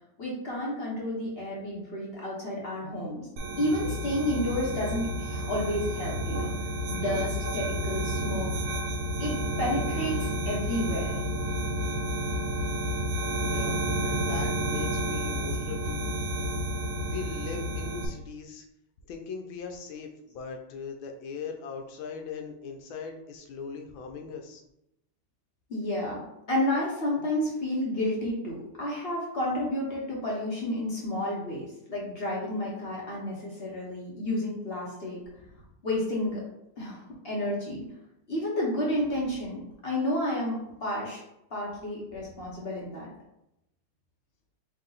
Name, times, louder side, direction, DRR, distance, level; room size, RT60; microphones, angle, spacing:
voice 1, 0.2-3.3 3.6-6.5 6.9-8.5 9.2-11.1 25.7-26.2 26.5-35.2 35.8-36.4 36.8-37.8 38.3-41.2 41.5-43.1, left 1 dB, 45° left, -4 dB, 0.9 m, -31 dB
sound 1, 3.4-18.1, right 1 dB, 80° right, 1.5 m, -30 dB
voice 2, 13.4-16.0 17.0-18.7 19.1-24.6 35.4-35.7 42.3-42.4, left 5 dB, 80° left, 3 dB, 1.4 m, -40 dB
3.7 x 2.8 x 3.9 m, 0.84 s
omnidirectional pair, 2.2 m